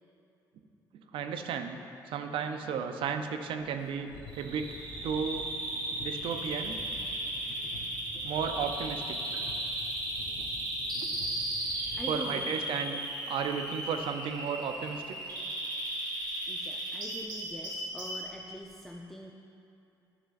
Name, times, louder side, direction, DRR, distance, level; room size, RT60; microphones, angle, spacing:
voice 1, 0.9-1.8 2.1-4.7 5.0-5.5 6.0-6.8 8.1-9.4 11.0-11.2 12.1-13.0 13.3-15.2, right 6 dB, 75° right, 7 dB, 0.5 m, -34 dB
sound 1, 4.1-12.0, left 2 dB, 70° left, 0.9 m, -49 dB
Bird vocalization bird call bird song, 4.3-18.3, right 1 dB, 50° right, 1.6 m, -36 dB
voice 2, 11.9-12.6 15.1-15.2 16.5-19.3, equal, 5° left, 0 dB, 0.5 m, -44 dB
10.5 x 6.3 x 2.5 m, 2.7 s
supercardioid pair, 65°, 9 cm